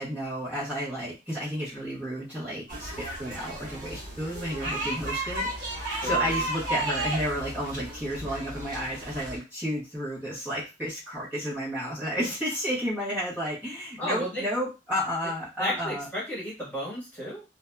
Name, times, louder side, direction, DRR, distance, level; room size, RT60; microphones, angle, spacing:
voice 1, 0.0-5.5 6.0-16.1, equal, 10° right, -11 dB, 1.0 m, -32 dB
sound 1, 2.7-9.4, right 1 dB, 50° right, 1.2 m, -33 dB
voice 2, 5.9-6.4 14.0-14.5 15.6-17.4, equal, 10° left, -7 dB, 1.3 m, -33 dB
2.6 x 2.4 x 2.2 m, 0.27 s
head